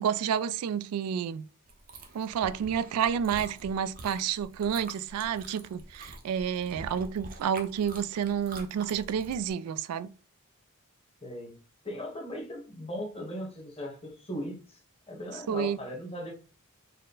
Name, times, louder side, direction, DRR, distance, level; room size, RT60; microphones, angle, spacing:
voice 1, 0.0-1.4 2.1-10.1 15.5-15.8, right 8 dB, 85° right, 0.3 m, -30 dB
Chewing mastication, 1.7-9.5, right 2 dB, 40° right, 0.7 m, -46 dB
voice 2, 11.2-11.5 11.8-14.8 15.1-16.3, equal, 25° left, 1.1 m, -38 dB
4.2 x 2.1 x 3.8 m
head